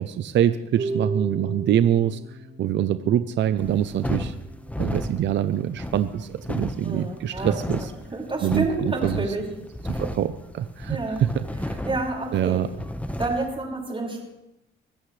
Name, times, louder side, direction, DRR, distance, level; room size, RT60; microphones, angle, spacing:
voice 1, 0.0-2.2 2.6-4.3 4.8-7.9 8.4-9.2 9.9-11.8 12.3-12.7, right 10 dB, 65° right, 12 dB, 0.7 m, -24 dB
Harp, 0.8-6.8, right 2 dB, 45° right, 5.6 m, -37 dB
sound 1, 3.6-13.5, left 1 dB, 5° left, 1.2 m, -33 dB
voice 2, 6.8-7.6 8.1-9.4 9.9-10.0 10.9-11.2 11.9-12.6 13.2-14.2, right 2 dB, 25° right, -2 dB, 5.5 m, -29 dB
23.5 x 14.5 x 3.3 m, 0.92 s
cardioid pair, 90°, 20 cm